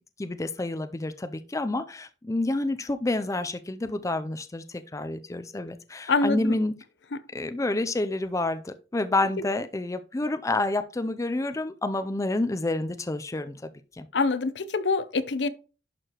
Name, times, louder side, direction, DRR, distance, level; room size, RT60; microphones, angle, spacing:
voice 1, 0.2-6.7 7.3-13.6 13.9-14.1, left 2 dB, 15° left, 0.4 m, -29 dB
voice 2, 6.1-6.6 7.1-7.2 14.1-15.5, left 3 dB, 70° left, 0.7 m, -25 dB
11.0 x 4.7 x 3.0 m
head